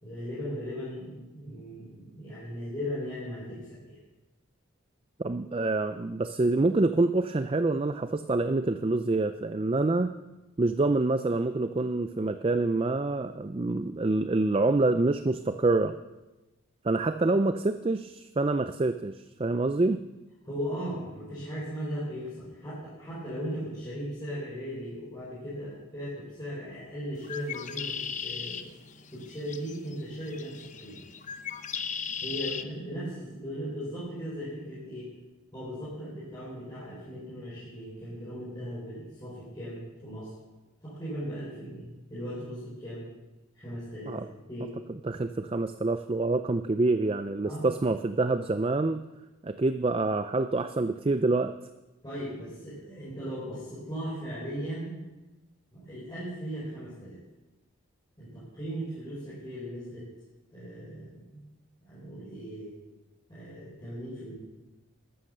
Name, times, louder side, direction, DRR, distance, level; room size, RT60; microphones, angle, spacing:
voice 1, 0.0-4.0 20.4-28.7 29.1-31.0 32.2-35.1 35.5-40.3 40.8-43.0 43.5-44.8 47.4-47.7 52.0-55.0 55.7-57.2 58.2-60.1 60.5-61.4 61.8-62.7 63.3-64.4, equal, 20° left, -8 dB, 4.7 m, -38 dB
voice 2, 5.2-10.1 10.6-16.0 16.8-20.0 44.1-44.3 45.0-49.0 49.4-51.5, right 2 dB, 25° right, 10 dB, 0.4 m, -26 dB
Bird, 27.2-32.6, left 7 dB, 35° left, 0.7 m, -38 dB
13.5 x 11.5 x 6.7 m, 1.1 s
head